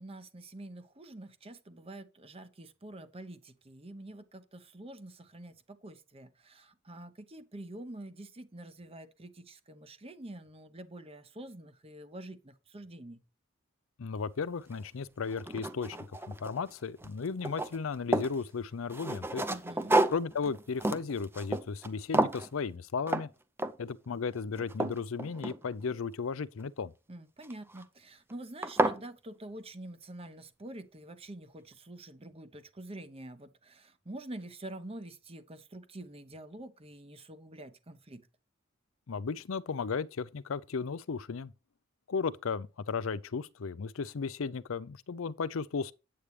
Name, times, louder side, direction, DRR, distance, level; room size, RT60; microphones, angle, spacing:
voice 1, 0.0-13.2 19.4-20.0 27.1-38.3, right 1 dB, 30° right, 0.9 m, -46 dB
voice 2, 14.0-16.0 16.3-19.4 20.1-23.3 23.8-26.9 39.1-41.5 42.1-45.9, left 5 dB, 85° left, 0.5 m, -35 dB
sound 1, 14.7-14.8 15.3-16.7 17.0-18.4 18.9-21.9 22.1-22.5 23.1-23.3 23.6-24.0 24.4-26.0 27.4-27.8 28.3-28.4 28.6-29.0, right 1 dB, 10° right, 0.6 m, -31 dB
8.7 x 8.2 x 3.2 m
head